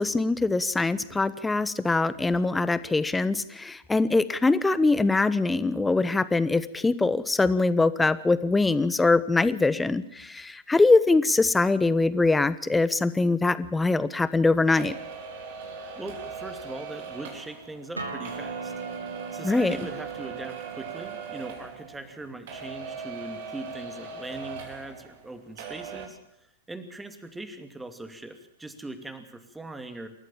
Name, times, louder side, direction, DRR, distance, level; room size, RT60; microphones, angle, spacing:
voice 1, 0.0-14.9 19.4-19.8, left 3 dB, 10° left, 16 dB, 1.1 m, -23 dB
sound 1, 14.8-22.2 22.5-25.3 25.6-26.1, right 6 dB, 55° right, 4.6 m, -39 dB
voice 2, 16.0-18.7 19.3-26.2 26.7-30.1, right 2 dB, 5° right, 8 dB, 2.6 m, -40 dB
Acoustic guitar, 18.0-23.2, right 2 dB, 85° right, 3.6 m, -41 dB
28.0 x 14.0 x 7.3 m, 0.76 s
figure-of-eight pair, 100°, 0 cm